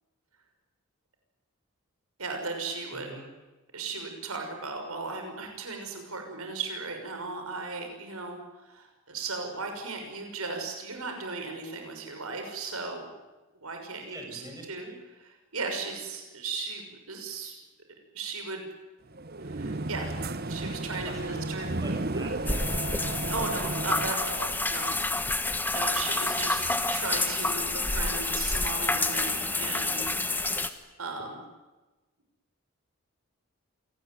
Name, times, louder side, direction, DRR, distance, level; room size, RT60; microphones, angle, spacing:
voice 1, 2.2-3.1 3.7-13.1 13.6-14.4 14.7-14.9 15.2-17.5 18.1-18.7 19.4-20.2 20.5-21.7 23.3-25.0 25.7-26.6 26.9-30.6 31.0-31.4, right 3 dB, 75° right, 4 dB, 6.2 m, -36 dB
voice 2, 2.9-3.3 14.1-15.0 21.0-22.5, right 2 dB, 15° right, 1 dB, 6.7 m, -44 dB
sound 1, 19.1-24.1, right 2 dB, 45° right, 0.9 m, -33 dB
sound 2, 22.5-30.7, left 2 dB, 10° left, 1.4 m, -28 dB
27.5 x 19.0 x 9.5 m, 1.1 s
head